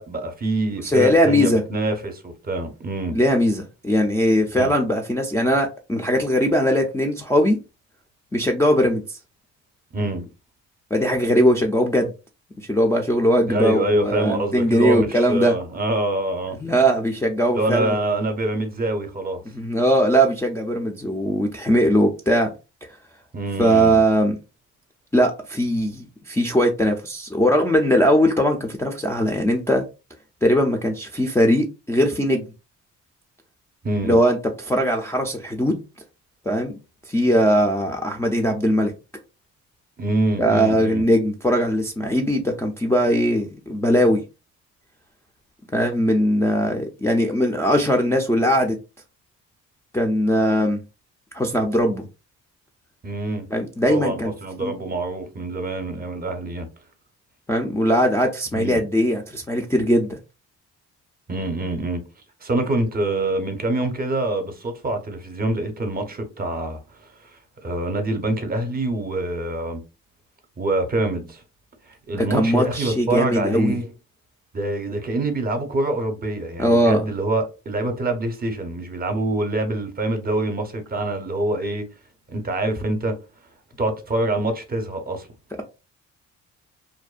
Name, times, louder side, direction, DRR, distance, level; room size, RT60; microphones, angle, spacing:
voice 1, 0.0-3.2 4.5-4.7 9.9-10.3 13.5-16.6 17.5-19.4 23.3-24.0 33.8-34.2 40.0-41.0 53.0-53.5 53.9-56.7 58.5-58.8 61.3-62.0 62.4-67.3 67.6-69.8 70.6-71.4 71.9-73.9 74.5-81.9 82.3-83.2 83.8-85.3, right 2 dB, 30° right, 0.7 m, -25 dB
voice 2, 0.8-1.6 3.1-7.6 8.3-9.2 10.9-12.1 12.7-15.5 16.6-17.9 19.5-22.5 23.6-24.4 25.1-29.8 30.4-32.4 34.0-35.8 36.5-36.8 37.1-38.9 40.4-44.2 45.7-48.8 49.9-50.8 51.3-52.1 53.5-54.3 54.6-54.7 57.5-60.2 72.1-73.8 76.6-77.0, equal, 10° left, 0.4 m, -20 dB
2.5 x 2.1 x 2.4 m
cardioid pair, 90°, 30 cm